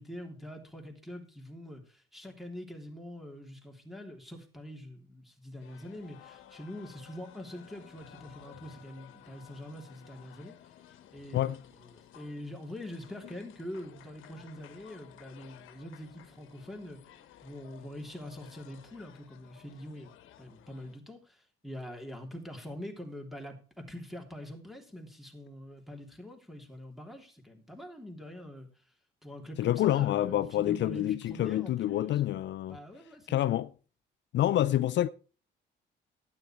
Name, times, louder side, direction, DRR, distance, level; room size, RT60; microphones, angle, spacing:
voice 1, 0.0-10.6 11.1-17.0 17.4-20.1 20.4-28.7 29.2-32.2 32.7-33.5, left 1 dB, ahead, 3.3 m, -44 dB
sound 1, 5.6-21.0, left 11 dB, 85° left, 1.2 m, -55 dB
voice 2, 29.6-32.8 33.3-33.7 34.3-35.1, left 13 dB, 65° left, 0.5 m, -27 dB
12.0 x 9.8 x 4.5 m
cardioid pair, 90°, 20 cm